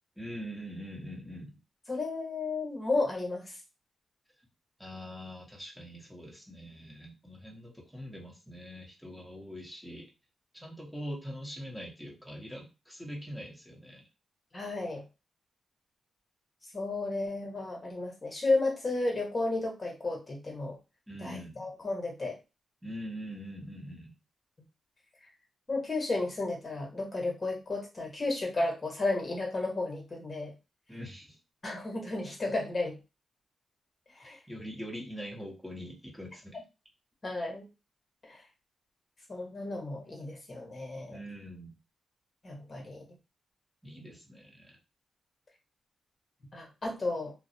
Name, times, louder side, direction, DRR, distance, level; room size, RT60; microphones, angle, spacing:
voice 1, 0.2-1.6 4.8-10.1 10.5-14.0 21.1-21.7 22.8-24.1 30.9-31.4 34.2-36.6 41.1-41.7 43.8-44.7, equal, ahead, -2 dB, 0.9 m, -43 dB
voice 2, 1.9-3.6 14.5-15.0 16.7-20.8 21.2-22.4 25.7-30.5 31.6-33.0 34.2-34.4 37.2-37.7 38.2-38.4 39.3-41.2 42.4-43.0 44.0-44.2 46.5-47.3, left 2 dB, 40° left, 0 dB, 1.0 m, -33 dB
2.3 x 2.0 x 2.7 m, 0.28 s
supercardioid pair, 50°, 0 cm